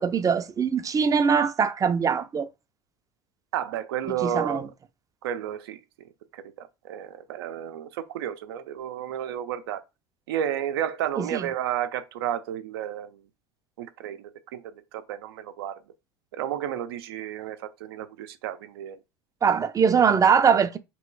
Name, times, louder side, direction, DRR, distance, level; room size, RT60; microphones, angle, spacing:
voice 1, 0.0-2.5 4.2-4.7 11.2-11.5 19.4-20.8, right 6 dB, 25° right, 0.5 m, -22 dB
voice 2, 3.5-4.7 5.2-5.8 6.3-9.8 10.3-13.2 13.8-15.8 16.3-19.0, right 10 dB, 80° right, 0.6 m, -32 dB
3.1 x 3.0 x 4.5 m
hypercardioid pair, 80°, 12 cm